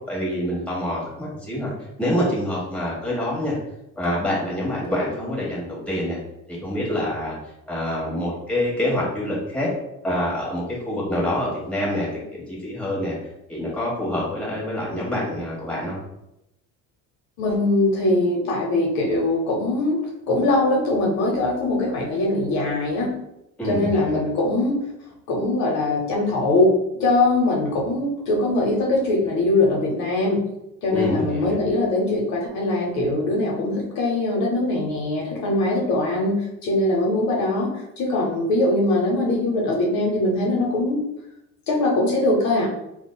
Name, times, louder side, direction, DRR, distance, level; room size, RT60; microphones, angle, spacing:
voice 1, 0.1-1.7 2.0-3.6 4.0-6.2 6.5-7.3 7.7-9.7 10.0-12.1 12.5-13.1 13.5-16.0 23.6-24.2 30.9-31.5, left 1 dB, 5° left, -7 dB, 1.3 m, -26 dB
voice 2, 17.4-20.0 20.3-23.1 23.6-24.8 25.3-30.4 30.8-37.7 38.0-41.0 41.7-42.7, left 2 dB, 65° left, -1 dB, 0.8 m, -22 dB
3.7 x 2.3 x 2.2 m, 0.86 s
cardioid pair, 115°, 31 cm